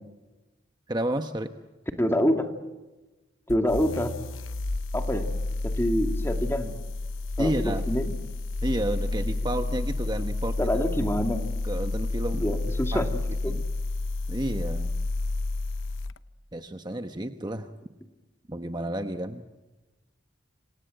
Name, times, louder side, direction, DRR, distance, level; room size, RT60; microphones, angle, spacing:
voice 1, 0.9-1.5 7.4-7.9 8.6-10.6 11.6-12.4 12.9-13.1 13.5-13.6 14.3-14.9 16.5-17.7 18.5-19.4, right 1 dB, 20° right, 7 dB, 1.0 m, -31 dB
voice 2, 2.0-2.4 3.5-4.1 4.9-5.3 5.6-6.7 7.4-8.1 10.6-11.5 12.4-13.5, equal, 15° left, 5 dB, 2.1 m, -26 dB
sound 1, 3.5-16.2, left 2 dB, 90° left, 0.9 m, -30 dB
27.5 x 27.0 x 7.9 m, 1.1 s
head